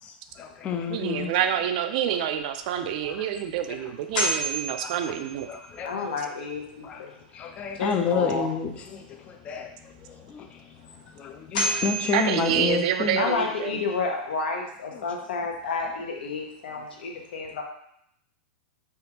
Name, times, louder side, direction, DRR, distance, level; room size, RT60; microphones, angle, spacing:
voice 1, 0.0-1.3 2.8-3.3 4.2-4.4 4.8-5.1 5.5-6.1 6.8-7.1 7.3-13.2 14.9-15.1 16.7-16.9, left 6 dB, 25° left, 5 dB, 0.3 m, -31 dB
voice 2, 0.7-5.5 12.1-13.8, right 9 dB, 55° right, 8 dB, 0.3 m, -27 dB
sound 1, 3.3-3.4 4.1-5.8 10.9-11.0 11.5-13.2, right 1 dB, 60° left, 1.0 m, -30 dB
voice 3, 5.8-7.1 7.8-8.5 13.2-17.6, left 4 dB, 85° left, 1 dB, 0.7 m, -30 dB
3.4 x 2.3 x 2.8 m, 0.72 s
supercardioid pair, 150°, 5 cm